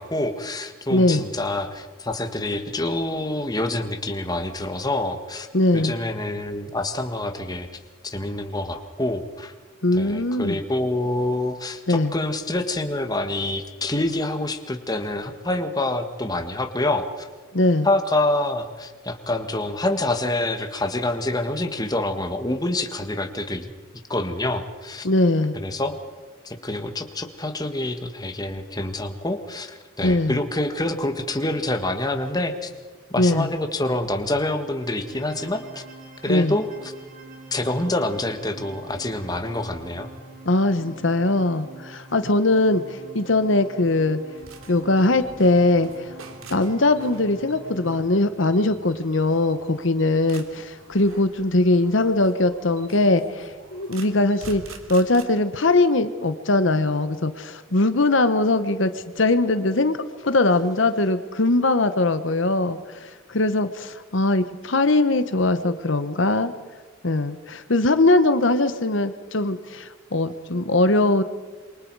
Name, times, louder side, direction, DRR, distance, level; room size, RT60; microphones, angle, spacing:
voice 1, 0.0-5.5 5.7-7.7 8.0-9.5 9.9-17.3 17.8-23.7 24.1-25.1 25.5-25.9 26.4-32.7 33.1-35.8 36.2-36.9 37.5-40.1, left 2 dB, 20° left, 7 dB, 1.6 m, -26 dB
voice 2, 0.9-1.2 5.5-6.0 9.8-10.6 11.9-12.1 17.5-17.9 25.0-25.6 30.0-30.4 33.2-33.5 36.3-36.5 40.5-44.2 44.7-46.1 46.5-54.6 54.9-60.0 60.2-66.5 67.0-71.2, left 2 dB, 65° left, 10 dB, 1.1 m, -21 dB
sound 1, 34.4-48.0, right 3 dB, 40° right, 4.3 m, -45 dB
sound 2, 44.4-55.2, right 3 dB, 85° right, 2.9 m, -46 dB
27.5 x 24.0 x 4.8 m, 1.5 s
head